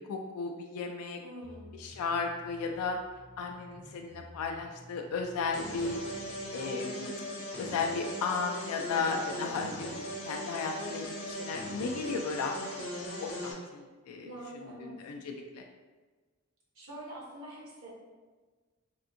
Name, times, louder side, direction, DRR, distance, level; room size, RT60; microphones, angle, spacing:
voice 1, 0.0-1.2 1.7-3.0 3.4-6.0 6.5-7.2 7.6-12.8 13.2-14.3 14.6-15.6, left 4 dB, 90° left, 3 dB, 0.3 m, -35 dB
voice 2, 1.2-1.7 8.9-9.7 14.2-14.9 16.7-17.9, right 1 dB, 65° right, -5 dB, 0.9 m, -46 dB
sound 1, 1.4-6.7, left 1 dB, 5° left, 0.4 m, -54 dB
sound 2, 5.5-13.5, left 1 dB, 55° left, 0.8 m, -39 dB
3.4 x 2.5 x 2.6 m, 1.4 s
head